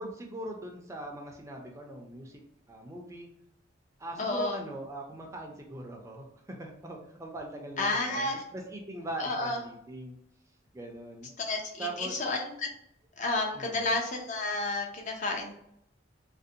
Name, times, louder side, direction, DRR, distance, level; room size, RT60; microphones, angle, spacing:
voice 1, 0.0-2.4 2.7-3.3 4.0-10.2 10.7-11.3 11.8-12.1 13.5-13.9, right 2 dB, 15° right, 1 dB, 0.4 m, -41 dB
voice 2, 4.2-4.6 7.8-8.4 9.2-9.6 11.4-12.7 13.2-15.5, left 2 dB, 40° left, 2 dB, 0.5 m, -31 dB
2.5 x 2.0 x 2.6 m, 0.75 s
head